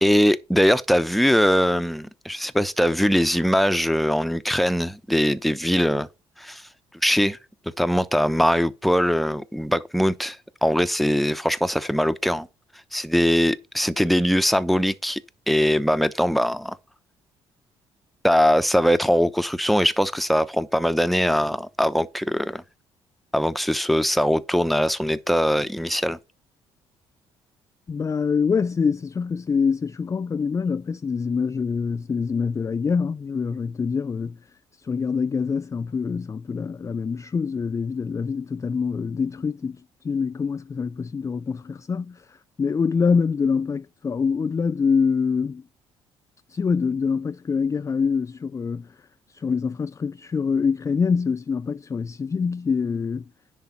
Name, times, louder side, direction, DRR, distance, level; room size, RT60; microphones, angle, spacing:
voice 1, 0.0-6.1 6.4-6.6 7.0-7.4 7.8-12.5 12.9-15.2 15.5-16.8 18.2-22.6 23.3-26.2, equal, ahead, 0.8 m, -21 dB
voice 2, 27.9-34.4 34.8-45.6 46.5-53.2, left 5 dB, 25° left, 0.3 m, -25 dB
10.5 x 4.1 x 5.7 m
hypercardioid pair, 50°, 13 cm